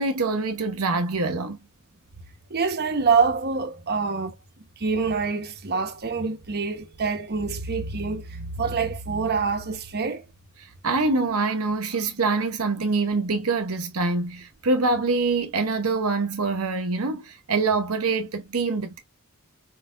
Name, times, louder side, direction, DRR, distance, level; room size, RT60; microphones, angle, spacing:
voice 1, 0.0-1.6 10.6-19.0, right 3 dB, 70° right, 0.8 m, -25 dB
voice 2, 2.5-4.4 4.8-10.3, right 5 dB, 45° right, 1.0 m, -26 dB
4.8 x 4.3 x 2.5 m
head